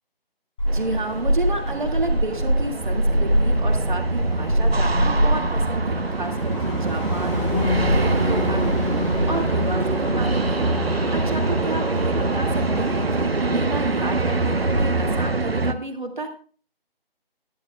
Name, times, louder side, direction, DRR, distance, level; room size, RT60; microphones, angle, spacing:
Motor vehicle (road), 0.6-15.3, equal, 30° left, 5.2 m, -26 dB
voice 1, 0.7-10.7 11.1-16.3, right 2 dB, 50° right, 3 dB, 2.1 m, -31 dB
sound 1, 0.7-15.7, right 3 dB, 75° right, 0.9 m, -24 dB
Bass guitar, 7.5-13.8, left 4 dB, 85° left, 2.7 m, -32 dB
14.5 x 11.0 x 2.3 m, 0.40 s
figure-of-eight pair, 155°, 30 cm